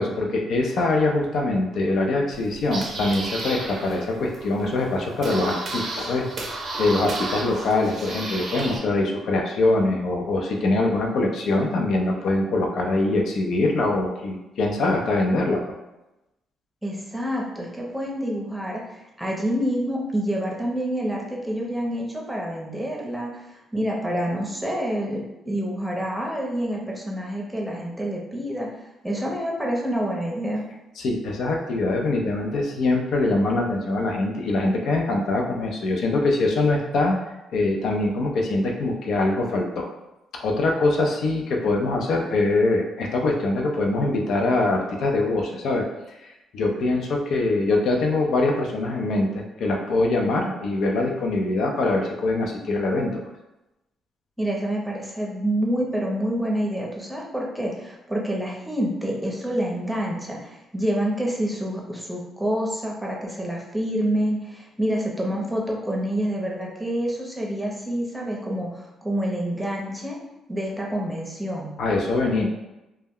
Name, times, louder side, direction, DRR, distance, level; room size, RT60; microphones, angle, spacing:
voice 1, 0.0-15.6 31.0-37.2 37.5-39.9 40.3-53.2 71.8-72.5, left 2 dB, 70° left, 1 dB, 0.4 m, -23 dB
sound 1, 2.3-8.8, right 2 dB, 55° right, 0.5 m, -33 dB
voice 2, 16.8-28.7 29.0-30.6 54.4-70.2 70.5-71.7, equal, 5° right, -2 dB, 0.6 m, -27 dB
2.2 x 2.1 x 3.5 m, 0.96 s
cardioid pair, 90°, 0 cm